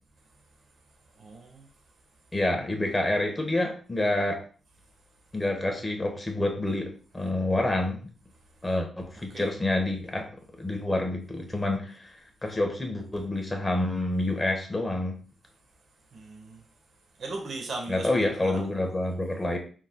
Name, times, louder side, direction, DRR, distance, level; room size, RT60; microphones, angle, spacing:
voice 1, 1.2-1.7 9.3-9.6 16.1-16.6 17.2-18.6, right 2 dB, 65° right, 2 dB, 1.4 m, -38 dB
voice 2, 2.3-4.4 5.3-8.1 8.6-10.3 10.6-12.1 12.4-15.2 17.9-19.6, left 1 dB, 20° left, 2 dB, 1.3 m, -28 dB
5.2 x 3.9 x 2.3 m, 0.40 s
cardioid pair, 85°, 0 cm